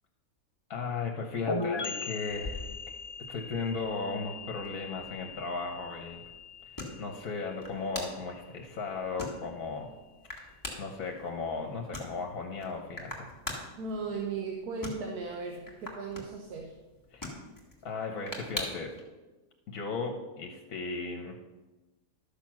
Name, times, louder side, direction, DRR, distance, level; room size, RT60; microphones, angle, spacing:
voice 1, 0.7-2.7 3.2-6.2 6.7-9.9 10.8-13.1 17.1-17.3 17.8-18.9 19.7-21.4, left 4 dB, 70° left, 2 dB, 1.5 m, -36 dB
sound 1, 1.5-9.0, left 4 dB, 35° left, 0.4 m, -40 dB
sound 2, 2.3-19.0, left 1 dB, 15° left, 2.2 m, -45 dB
voice 2, 13.8-16.7, right 4 dB, 85° right, 2 dB, 1.5 m, -36 dB
12.0 x 6.8 x 6.0 m, 1.2 s
omnidirectional pair, 1.6 m